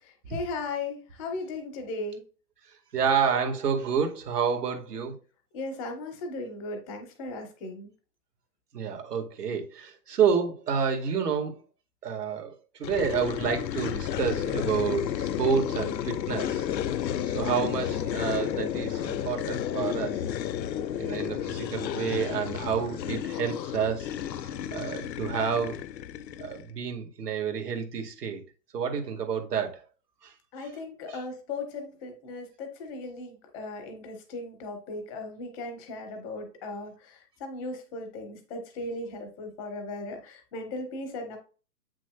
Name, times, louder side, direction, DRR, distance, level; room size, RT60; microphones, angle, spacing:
voice 1, 0.0-2.2 5.5-7.9 21.2-21.4 30.5-41.4, left 2 dB, 5° left, 0.6 m, -37 dB
voice 2, 2.9-5.2 8.7-11.5 12.0-12.5 12.8-16.6 17.3-20.2 20.9-24.1 24.7-25.8 26.4-28.4 28.7-29.8 30.2-30.3 31.1-31.2, right 6 dB, 65° right, 2.0 m, -29 dB
sound 1, 12.8-26.7, left 10 dB, 90° left, 0.6 m, -32 dB
8.0 x 6.1 x 2.4 m
hypercardioid pair, 155°, 49 cm